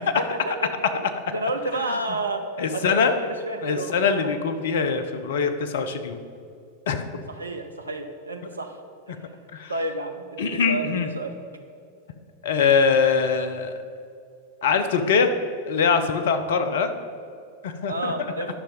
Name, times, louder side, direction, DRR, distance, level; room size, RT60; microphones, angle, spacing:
voice 1, 0.1-0.7 1.3-2.5 2.7-4.3 7.3-8.8 9.1-9.2 9.7-11.3 17.8-18.5, right 2 dB, 80° right, 6 dB, 0.8 m, -30 dB
voice 2, 2.6-3.1 3.6-6.2 6.9-7.2 9.5-9.7 10.4-11.1 12.4-13.7 14.6-15.3 15.7-16.9 17.6-18.1, left 5 dB, 60° left, 8 dB, 0.7 m, -23 dB
10.0 x 5.7 x 5.3 m, 2.4 s
figure-of-eight pair, 90°, 0 cm